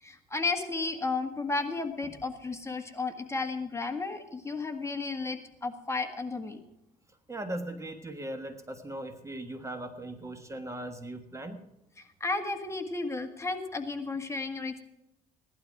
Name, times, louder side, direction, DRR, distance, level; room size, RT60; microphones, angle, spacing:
voice 1, 0.0-6.6 12.0-14.8, left 3 dB, 15° left, 5 dB, 1.7 m, -33 dB
voice 2, 7.3-11.6, right 1 dB, 15° right, 7 dB, 1.5 m, -39 dB
16.5 x 12.0 x 4.7 m, 0.86 s
cardioid pair, 110°, 17 cm